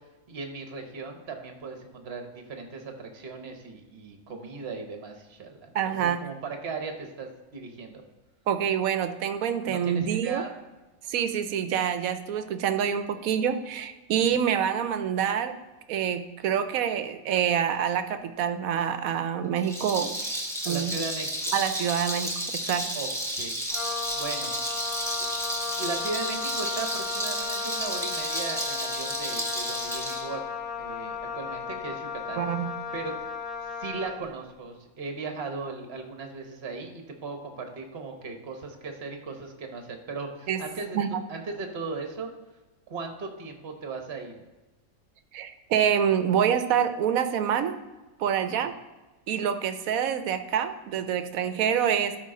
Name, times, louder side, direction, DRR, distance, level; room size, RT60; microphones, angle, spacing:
voice 1, 0.3-8.0 9.7-10.5 14.3-14.4 20.6-21.5 22.9-23.5 24.1-24.5 25.2-25.3 25.8-30.4 30.8-32.4 32.9-33.1 33.8-41.0 41.3-42.3 42.9-44.3, right 4 dB, 50° right, 5 dB, 1.3 m, -37 dB
voice 2, 5.7-6.2 8.5-10.4 11.1-15.6 15.9-20.1 20.7-20.9 21.5-22.8 32.4-32.7 40.5-40.6 40.9-41.2 45.3-47.8 48.2-48.7 49.3-52.2, right 8 dB, 80° right, 10 dB, 1.1 m, -26 dB
Rattle, 19.6-30.2, equal, ahead, 1.2 m, -32 dB
Wind instrument woodwind instrument, 23.7-34.3, left 6 dB, 90° left, 1.4 m, -35 dB
12.5 x 4.8 x 3.8 m, 1.1 s
omnidirectional pair, 1.5 m